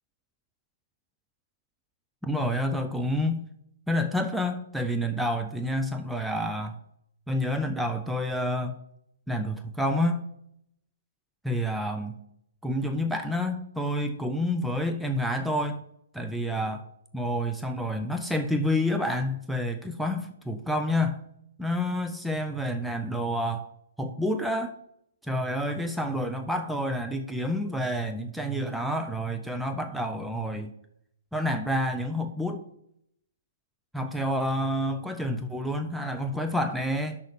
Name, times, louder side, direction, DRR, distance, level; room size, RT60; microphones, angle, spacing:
voice 1, 2.2-3.5 3.9-6.8 7.3-8.8 9.3-10.3 11.4-12.2 12.6-15.8 16.1-16.8 17.1-21.2 21.6-23.7 24.0-24.7 25.3-30.7 31.3-32.6 33.9-37.2, left 1 dB, ahead, 5 dB, 0.5 m, -28 dB
6.4 x 5.8 x 6.8 m, 0.75 s
figure-of-eight pair, 120°, 0 cm